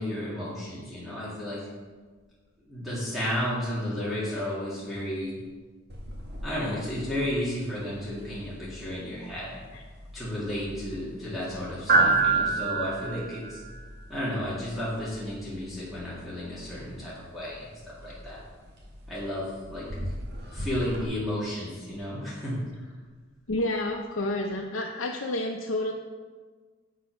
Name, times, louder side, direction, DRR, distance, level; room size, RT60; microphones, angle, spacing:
voice 1, 0.0-1.6 2.7-5.4 6.4-9.7 10.1-13.6 14.1-18.4 19.1-19.9 20.5-22.9, left 1 dB, ahead, -10 dB, 2.3 m, -33 dB
sound 1, 5.9-21.0, right 3 dB, 55° right, 1.8 m, -32 dB
voice 2, 23.5-25.9, left 1 dB, 85° left, 0 dB, 0.7 m, -29 dB
7.4 x 6.2 x 5.9 m, 1.4 s
head